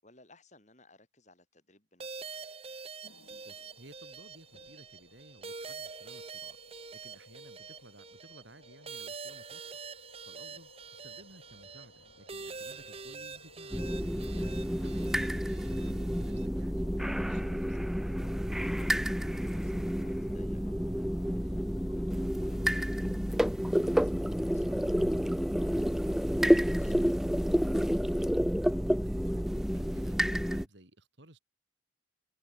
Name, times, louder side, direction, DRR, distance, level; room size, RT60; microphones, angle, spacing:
voice 1, 0.0-2.3 10.4-10.6 18.6-21.6 21.9-25.1 25.6-27.2, left 2 dB, 35° left, 7.7 m, -62 dB
sound 1, 2.0-16.5, right 5 dB, 30° right, 1.3 m, -45 dB
sound 2, 3.0-22.3, left 2 dB, 70° left, 4.5 m, -59 dB
voice 2, 3.4-6.6 6.9-9.7 10.3-15.5 15.9-17.8 28.1-28.5 28.9-31.4, right 1 dB, 60° right, 3.7 m, -56 dB
sound 3, 13.7-30.7, equal, ahead, 0.6 m, -29 dB
head